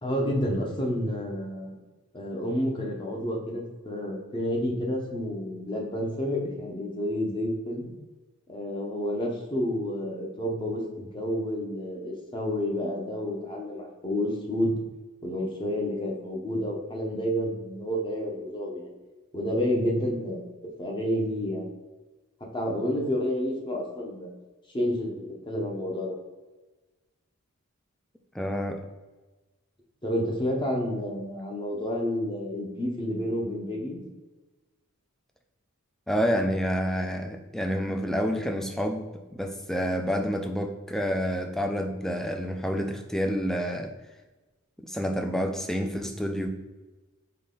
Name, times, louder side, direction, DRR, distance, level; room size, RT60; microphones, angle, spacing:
voice 1, 0.0-1.7 2.1-7.9 8.5-14.7 15.2-18.9 19.3-21.7 22.4-24.3 24.7-26.2 30.0-34.0, equal, 20° left, -1 dB, 0.8 m, -30 dB
voice 2, 28.3-28.8 36.1-39.0 39.3-43.9 44.8-46.5, equal, ahead, 4 dB, 0.3 m, -28 dB
3.9 x 3.2 x 3.8 m, 1.2 s
head